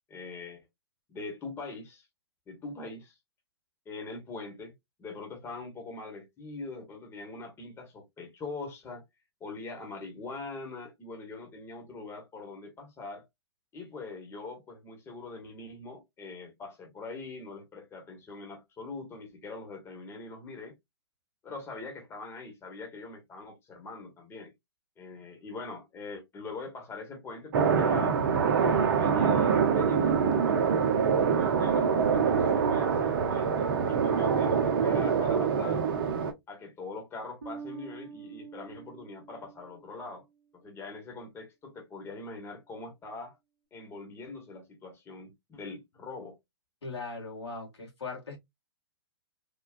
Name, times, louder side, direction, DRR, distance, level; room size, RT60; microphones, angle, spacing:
voice 1, 0.1-0.6 1.1-2.1 2.5-3.1 3.8-4.7 5.0-9.0 9.4-13.2 13.7-20.7 21.4-24.5 25.0-28.2 28.9-30.6 31.3-35.8 36.5-40.2 40.5-43.4 43.7-46.3, left 3 dB, 20° left, 1.2 m, -42 dB
sound 1, 27.5-36.3, right 6 dB, 55° right, 0.8 m, -25 dB
Bass guitar, 37.4-40.1, right 6 dB, 90° right, 0.9 m, -46 dB
voice 2, 46.8-48.4, left 3 dB, 85° left, 1.9 m, -39 dB
3.6 x 2.3 x 2.4 m
hypercardioid pair, 120°, 14 cm